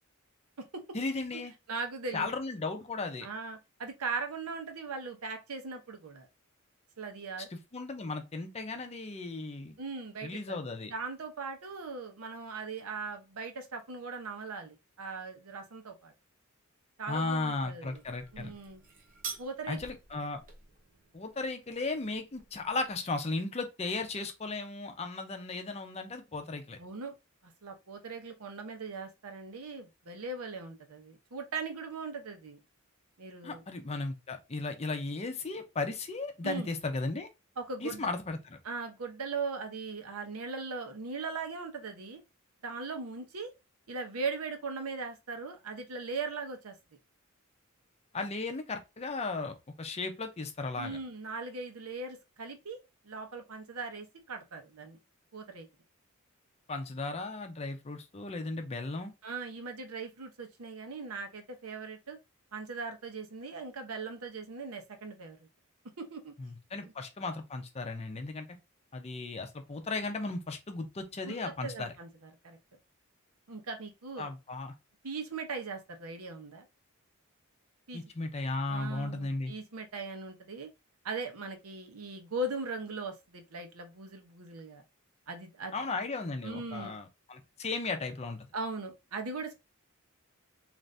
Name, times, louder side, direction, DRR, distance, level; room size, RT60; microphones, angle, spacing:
voice 1, 0.9-1.5 2.1-3.3 7.5-9.8 10.2-10.9 17.1-18.5 19.7-20.4 21.1-26.8 33.4-37.3 37.8-38.6 48.1-51.0 56.7-59.1 66.4-68.5 68.9-71.9 74.2-74.7 77.9-79.5 85.7-88.5, left 3 dB, 30° left, 0.5 m, -36 dB
voice 2, 1.7-2.3 3.2-6.3 7.0-7.5 9.8-10.6 10.9-16.1 17.0-18.0 18.3-18.8 19.4-19.8 26.8-27.1 27.4-32.6 33.2-33.6 36.4-36.7 37.6-38.1 38.6-42.2 42.6-43.5 43.9-46.8 50.8-52.8 53.0-55.0 55.3-55.7 59.2-62.2 62.5-65.5 66.0-66.3 66.8-66.9 71.2-72.6 73.5-74.3 75.0-76.6 77.9-78.0 78.7-80.7 81.0-84.8 85.3-85.8 86.4-86.9 88.5-89.5, right 4 dB, 90° right, 0.8 m, -39 dB
sound 1, 17.9-23.0, right 5 dB, 40° right, 0.8 m, -48 dB
2.6 x 2.5 x 3.2 m
head